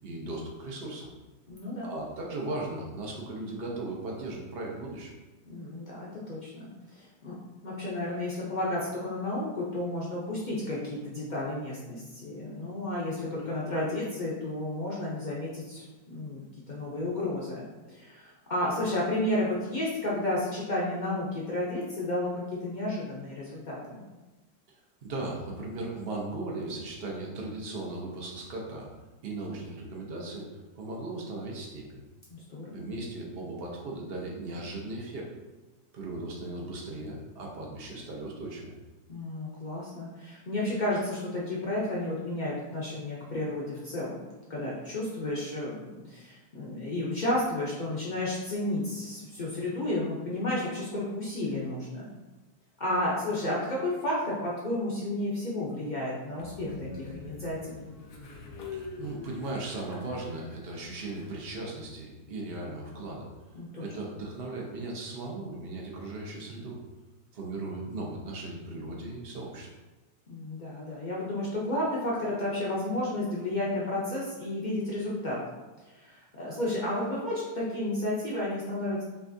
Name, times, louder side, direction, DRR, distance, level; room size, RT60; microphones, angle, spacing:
voice 1, 0.0-1.1 1.8-5.1 25.0-28.9 29.2-30.5 30.7-31.9 32.7-35.3 35.9-38.7 58.7-63.3 63.8-66.8 67.3-69.7, right 2 dB, 50° right, -2 dB, 0.7 m, -37 dB
voice 2, 1.5-1.9 5.5-6.6 6.9-22.3 22.6-24.0 32.3-32.9 39.1-52.1 52.8-57.7 63.5-63.9 70.3-75.4 75.9-79.0, left 1 dB, 80° left, -6 dB, 0.4 m, -32 dB
Train, 56.4-61.7, left 3 dB, 65° left, 1.0 m, -44 dB
6.0 x 2.4 x 2.6 m, 1.1 s
omnidirectional pair, 1.8 m